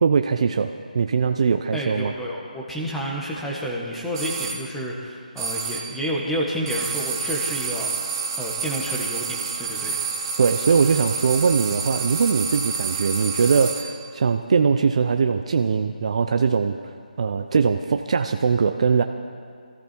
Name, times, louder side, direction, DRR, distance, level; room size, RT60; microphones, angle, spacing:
voice 1, 0.0-2.1 10.4-16.8 17.2-19.0, right 5 dB, 45° right, 6 dB, 0.6 m, -21 dB
voice 2, 1.7-7.9 8.4-10.0, equal, 5° left, -4 dB, 1.6 m, -30 dB
sound 1, 4.1-4.7 5.4-6.0 6.7-14.0, right 5 dB, 30° right, 1.1 m, -29 dB
20.5 x 14.5 x 4.5 m, 2.1 s
figure-of-eight pair, 160°, 5 cm